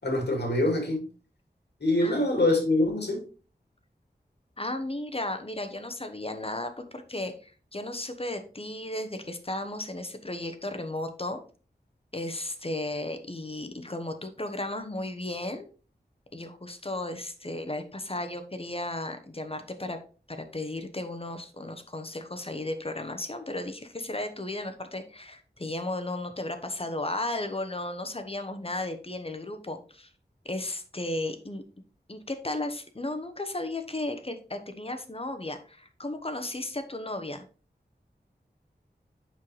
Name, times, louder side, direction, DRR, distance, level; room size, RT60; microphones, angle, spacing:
voice 1, 0.0-1.0 1.8-3.2, left 1 dB, 80° left, 2.3 m, -24 dB
voice 2, 4.6-11.4 12.1-15.7 16.3-20.0 20.3-30.1 30.4-31.6 32.1-37.5, left 2 dB, 35° left, 1.0 m, -34 dB
7.3 x 5.7 x 3.2 m
wide cardioid pair, 65°, 17 cm